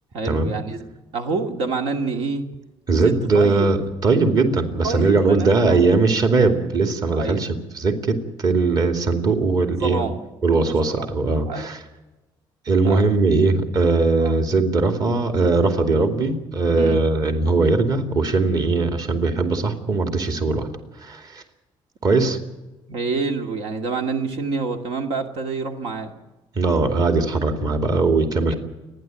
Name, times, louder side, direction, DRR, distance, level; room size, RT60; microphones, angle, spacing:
voice 1, 0.1-0.8 1.1-2.4 2.9-3.7 4.8-5.8 7.1-7.4 9.8-10.2 10.6-11.1 11.5-11.7 12.8-13.0 14.2-14.3 16.7-17.0 22.9-26.1 28.3-28.5, right 4 dB, 80° right, 4 dB, 2.4 m, -27 dB
voice 2, 2.9-10.1 10.4-11.8 12.7-20.7 21.0-21.4 22.0-22.4 26.6-28.5, right 3 dB, 45° right, 5 dB, 2.5 m, -20 dB
29.0 x 10.5 x 9.1 m, 1.1 s
cardioid pair, 125°, 9 cm